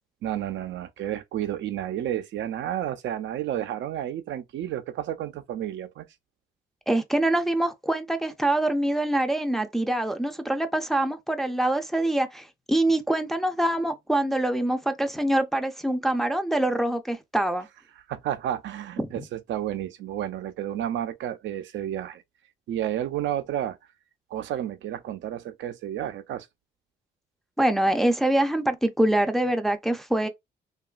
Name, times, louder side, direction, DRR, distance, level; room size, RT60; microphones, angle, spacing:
voice 1, 0.2-6.1 18.1-22.2 22.7-23.8 24.3-26.5, right 11 dB, 70° right, 0.4 m, -31 dB
voice 2, 6.9-17.7 19.0-19.2 27.6-30.3, right 1 dB, ahead, 0.4 m, -25 dB
2.8 x 2.3 x 2.3 m
cardioid pair, 90°, 20 cm